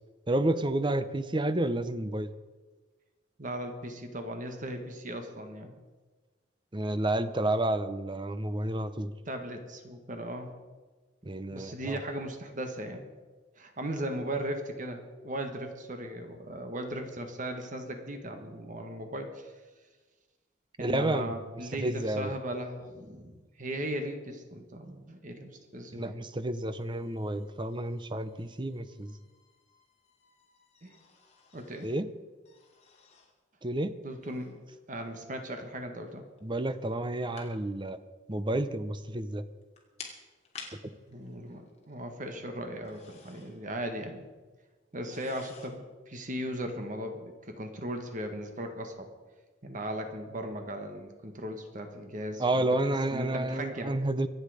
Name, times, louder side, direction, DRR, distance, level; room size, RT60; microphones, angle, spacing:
voice 1, 0.3-2.3 6.7-9.1 11.2-12.0 20.8-21.3 21.8-22.4 25.9-29.1 31.8-32.1 33.6-33.9 36.4-38.0 38.3-39.4 52.4-54.3, right 1 dB, 25° right, 12 dB, 0.8 m, -30 dB
voice 2, 3.4-5.8 9.2-10.5 11.5-13.0 13.6-19.5 20.8-26.2 30.8-31.0 31.5-31.9 34.0-34.6 34.9-36.2 41.1-44.2 44.9-49.1 49.6-54.0, right 1 dB, 40° right, 5 dB, 1.6 m, -37 dB
sound 1, 26.7-32.0 32.5-33.4 34.2-34.6 36.4-37.5 37.9-38.0 39.3-39.4 39.6-42.3 42.6-43.6 44.0-44.1 44.9-45.7, left 5 dB, 35° left, 2.8 m, -52 dB
25.0 x 8.9 x 5.0 m, 1.3 s
head